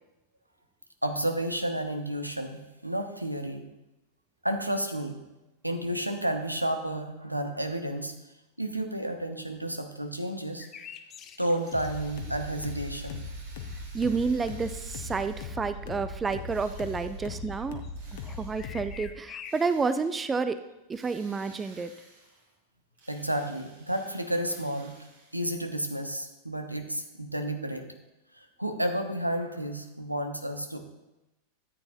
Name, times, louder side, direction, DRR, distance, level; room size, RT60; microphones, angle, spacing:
voice 1, 1.0-3.7 4.4-5.2 5.6-8.1 8.6-10.7 11.4-13.2 23.1-25.0 25.3-27.9 28.4-30.8, right 1 dB, 85° right, 6 dB, 0.9 m, -31 dB
sound 1, 10.6-12.0 12.6-12.7 13.8-14.2 14.5-15.8 16.1-16.2 16.5-19.5, left 8 dB, 30° left, 0.7 m, -47 dB
Drill, 11.6-15.7 16.5-17.4 18.0-18.8 19.5-20.4 20.9-22.6 22.9-25.6, right 2 dB, 60° right, 2.7 m, -55 dB
sound 2, 11.7-19.1, left 3 dB, 55° left, 1.1 m, -39 dB
voice 2, 13.9-17.8 18.1-20.6 20.9-21.9, right 4 dB, 15° right, 12 dB, 0.4 m, -30 dB
13.5 x 8.8 x 2.7 m, 0.99 s
figure-of-eight pair, 90°, 0 cm